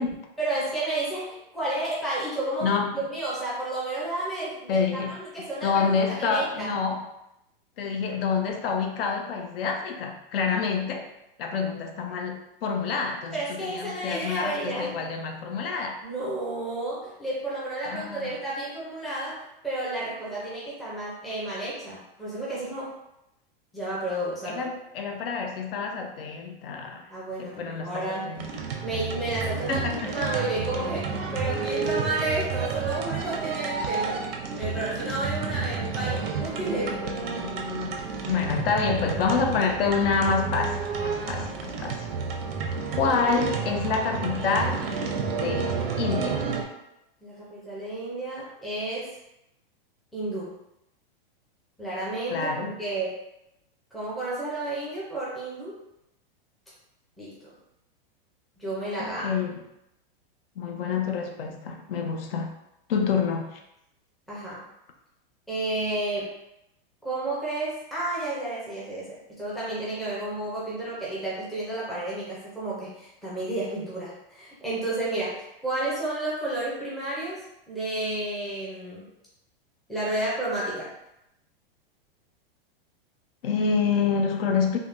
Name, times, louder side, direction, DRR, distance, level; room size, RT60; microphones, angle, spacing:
voice 1, 0.4-6.7 13.3-15.0 16.0-22.9 23.7-24.7 27.1-28.3 28.8-34.2 34.6-37.2 41.2-41.4 47.2-49.1 50.1-50.6 51.8-53.1 53.9-55.8 57.2-57.5 58.6-59.4 64.3-64.6 65.5-66.3 67.0-75.4 75.6-77.4 77.7-79.0 79.9-80.9, right 2 dB, ahead, -8 dB, 0.4 m, -31 dB
voice 2, 2.6-3.0 4.7-5.1 5.6-7.0 7.8-11.1 11.4-16.0 17.8-18.3 24.4-27.1 27.4-28.5 29.7-30.3 38.2-42.1 42.9-44.8 45.4-46.5 52.3-52.7 59.0-59.6 60.6-62.5 62.9-63.6 83.4-84.8, left 5 dB, 75° left, 3 dB, 0.6 m, -27 dB
sound 1, 28.4-46.6, right 5 dB, 90° right, 0.7 m, -30 dB
3.5 x 2.1 x 2.5 m, 0.84 s
supercardioid pair, 160°, 29 cm